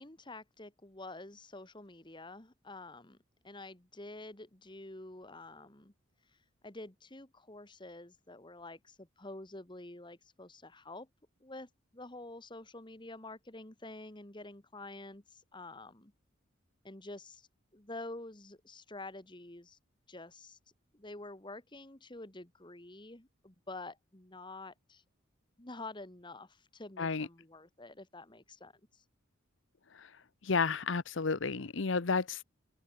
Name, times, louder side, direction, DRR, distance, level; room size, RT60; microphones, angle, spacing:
voice 1, 0.0-3.2 3.4-5.9 6.6-11.1 11.4-16.1 16.8-17.5 17.7-19.8 20.1-20.6 20.9-25.0 25.6-29.0, left 2 dB, 20° left, 1.7 m, -48 dB
voice 2, 27.0-27.3 30.4-32.4, left 4 dB, 60° left, 0.8 m, -31 dB
open air
head